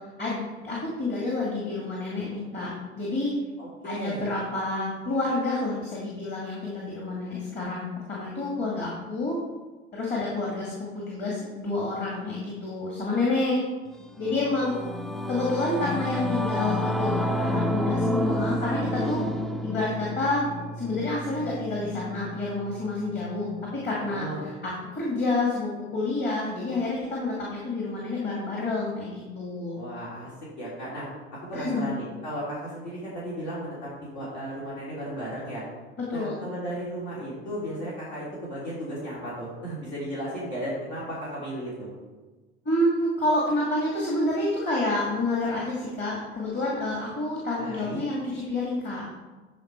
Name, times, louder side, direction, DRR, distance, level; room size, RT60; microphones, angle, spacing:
voice 1, 0.2-3.3 3.8-9.4 9.9-13.6 14.2-14.8 15.3-19.2 19.6-20.5 20.8-29.8 31.5-31.9 36.0-36.4 42.6-49.1, left 2 dB, 30° left, -4 dB, 2.4 m, -29 dB
voice 2, 3.6-4.3 24.0-24.5 29.7-31.1 31.3-33.9 34.1-35.6 36.1-41.9 47.6-48.0, equal, 65° left, -7 dB, 3.1 m, -35 dB
Singing / Musical instrument, 14.0-23.7, left 1 dB, ahead, 0.4 m, -30 dB
12.5 x 4.6 x 4.5 m, 1.3 s
figure-of-eight pair, 70°, 33 cm